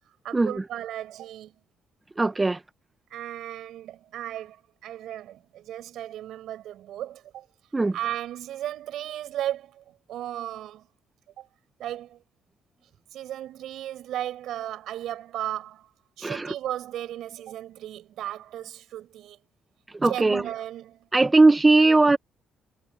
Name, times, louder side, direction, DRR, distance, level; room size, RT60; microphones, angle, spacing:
voice 1, 0.2-1.5 3.1-7.5 7.9-10.9 11.4-11.5 11.8-12.2 13.1-15.9 16.2-19.4 20.1-21.1, right 12 dB, 80° right, 5.1 m, -35 dB
voice 2, 2.2-2.6 7.7-7.9 16.2-16.5 20.0-20.4 21.1-22.2, right 3 dB, 20° right, 0.6 m, -19 dB
cardioid pair, 90°, 0 cm